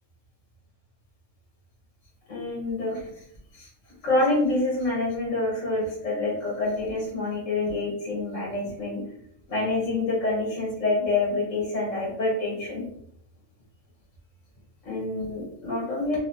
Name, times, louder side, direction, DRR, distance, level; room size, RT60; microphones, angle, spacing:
voice 1, 2.3-3.0 3.5-3.7 4.0-9.0 9.5-12.8 14.8-16.2, left 2 dB, 70° left, -4 dB, 1.7 m, -27 dB
4.0 x 3.2 x 2.9 m, 0.71 s
omnidirectional pair, 1.4 m